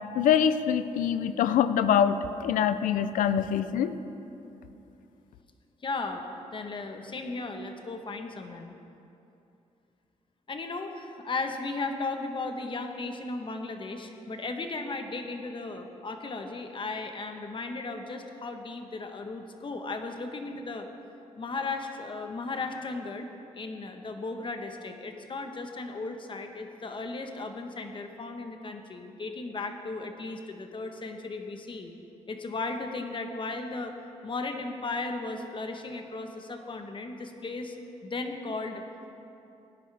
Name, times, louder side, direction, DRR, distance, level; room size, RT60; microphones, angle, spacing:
voice 1, 0.1-4.0, left 8 dB, 85° left, 12 dB, 0.5 m, -24 dB
voice 2, 5.8-6.2 6.5-8.7 10.5-20.9 21.4-23.3 23.5-31.9 32.3-37.8 38.0-38.8, left 3 dB, 40° left, 5 dB, 1.1 m, -36 dB
17.0 x 10.0 x 3.4 m, 2.8 s
cardioid pair, 80°, 13 cm